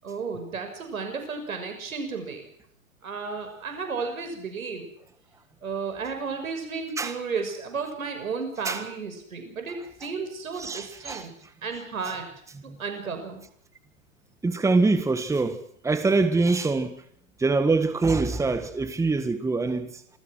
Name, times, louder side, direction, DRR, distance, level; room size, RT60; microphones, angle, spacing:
voice 1, 0.0-2.5 3.0-4.9 5.6-11.3 11.6-12.3 12.6-13.4, right 5 dB, 80° right, 6.5 m, -33 dB
voice 2, 10.6-11.2 12.7-12.8 14.4-15.6 15.8-17.0 17.4-19.9, right 3 dB, 5° right, 1.6 m, -24 dB
28.0 x 19.0 x 6.3 m
hypercardioid pair, 110°, 41 cm